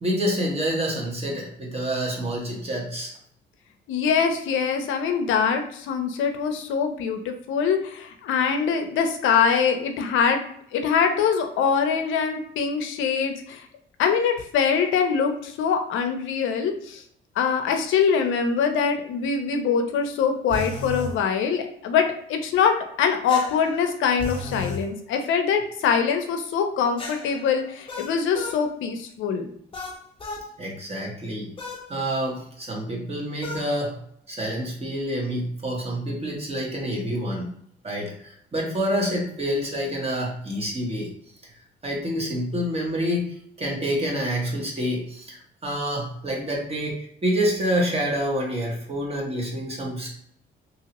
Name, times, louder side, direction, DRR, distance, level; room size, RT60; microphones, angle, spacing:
voice 1, 0.0-3.1 30.6-31.5 31.9-34.0 34.3-37.5 37.8-41.1 41.8-50.1, equal, 30° right, -2 dB, 1.1 m, -27 dB
voice 2, 3.9-10.4 10.7-13.7 14.0-17.0 17.4-29.5, left 6 dB, 80° left, 5 dB, 0.5 m, -23 dB
sound 1, 20.5-21.2 23.3-24.8 27.0-28.6 29.7-30.5 31.6-31.9 33.4-33.7, left 3 dB, 25° left, 0.8 m, -34 dB
2.8 x 2.8 x 2.9 m, 0.68 s
cardioid pair, 90°, 20 cm